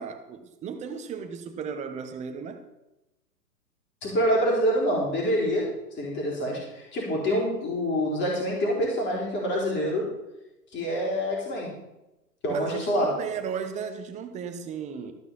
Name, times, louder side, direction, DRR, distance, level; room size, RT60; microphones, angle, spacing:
voice 1, 0.0-2.6 12.5-15.1, right 6 dB, 15° right, 8 dB, 0.8 m, -35 dB
voice 2, 4.0-10.1 10.7-11.8 12.4-13.2, equal, 20° left, -3 dB, 4.4 m, -26 dB
14.0 x 6.1 x 7.2 m, 0.95 s
hypercardioid pair, 125°, 48 cm